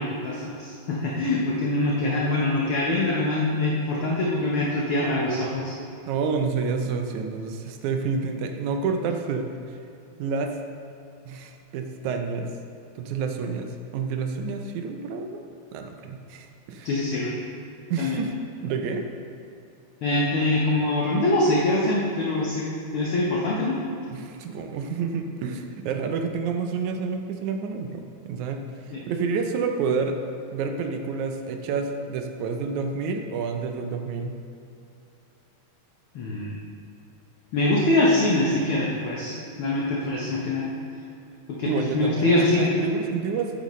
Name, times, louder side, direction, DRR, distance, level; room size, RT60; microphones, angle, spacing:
voice 1, 0.0-5.7 16.8-17.3 18.0-18.2 20.0-23.8 28.9-29.0 36.1-36.6 37.5-40.7 41.5-42.7, left 2 dB, 60° left, -4 dB, 1.4 m, -24 dB
voice 2, 6.1-9.5 10.2-10.5 11.3-12.5 13.0-15.4 15.7-16.9 17.9-18.3 18.6-19.1 24.1-30.2 30.5-34.4 41.7-43.5, right 5 dB, 80° right, 4 dB, 2.0 m, -29 dB
11.5 x 8.9 x 3.1 m, 2.7 s
omnidirectional pair, 3.5 m